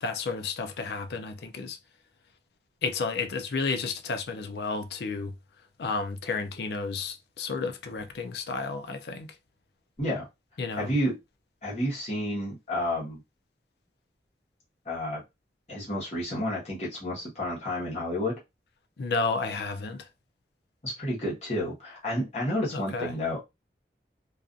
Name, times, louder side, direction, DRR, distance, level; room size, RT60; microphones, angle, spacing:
voice 1, 0.0-1.8 2.8-5.4 5.8-9.3 10.6-10.9 19.0-20.1 22.7-23.1, left 4 dB, 70° left, 0.4 m, -32 dB
voice 2, 10.8-11.2 11.6-13.2 14.8-15.2 15.7-18.3 20.8-23.4, left 1 dB, 35° left, 1.1 m, -30 dB
2.5 x 2.4 x 2.4 m
head